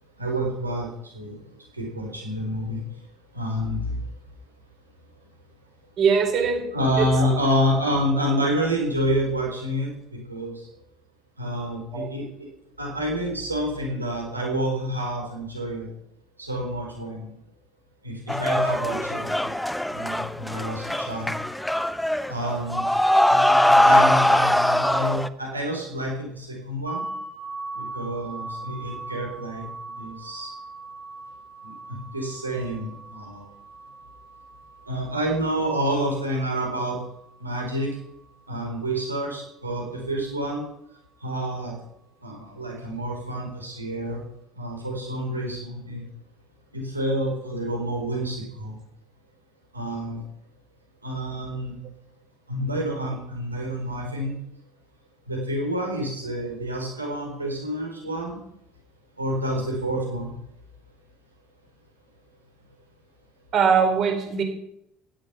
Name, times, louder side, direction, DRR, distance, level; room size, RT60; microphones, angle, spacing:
voice 1, 0.2-0.9 1.1-1.4 1.8-2.8 3.3-4.0 6.7-9.9 10.3-10.5 11.4-12.3 12.8-15.9 16.4-17.3 18.0-19.5 19.9-21.3 22.3-22.8 23.3-27.0 27.8-29.6 30.0-30.5 32.1-33.4 34.9-36.9 37.4-37.9 38.5-40.6 41.2-41.7 42.2-44.2 44.6-46.0 46.7-48.8 49.7-50.2 51.0-51.7 52.5-54.3 55.3-58.4 59.2-60.3, equal, 90° right, 0 dB, 4.4 m, -28 dB
voice 2, 6.0-6.7 7.0-7.1 11.9-12.1 63.5-64.4, right 6 dB, 45° right, 5 dB, 4.3 m, -21 dB
sound 1, 18.3-25.3, left 1 dB, 5° left, 1.0 m, -21 dB
sound 2, 26.9-38.6, right 3 dB, 20° right, 4.2 m, -40 dB
17.0 x 12.0 x 6.0 m, 0.78 s
figure-of-eight pair, 60°, 0 cm